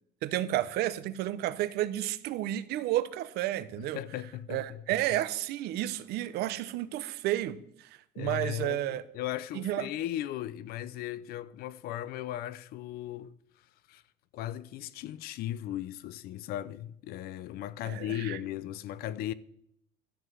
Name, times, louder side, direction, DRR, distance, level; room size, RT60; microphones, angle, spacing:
voice 1, 0.2-4.0 4.5-7.5 8.2-9.0 9.5-9.8 17.8-18.4, right 14 dB, 65° right, 0.9 m, -31 dB
voice 2, 3.8-4.8 8.1-13.3 13.9-14.0 14.3-19.3, left 12 dB, 60° left, 0.7 m, -37 dB
13.0 x 7.9 x 7.7 m
cardioid pair, 165°, 18 cm